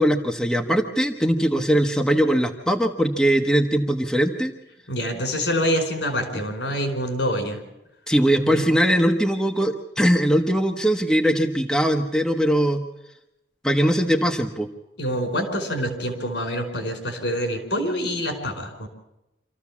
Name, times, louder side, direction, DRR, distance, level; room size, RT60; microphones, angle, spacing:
voice 1, 0.0-4.5 8.1-12.8 13.6-14.7, equal, 5° left, 3 dB, 1.0 m, -21 dB
voice 2, 4.9-7.6 8.4-8.6 15.0-18.9, equal, 85° left, 5 dB, 4.5 m, -26 dB
26.0 x 14.5 x 7.3 m, 0.91 s
head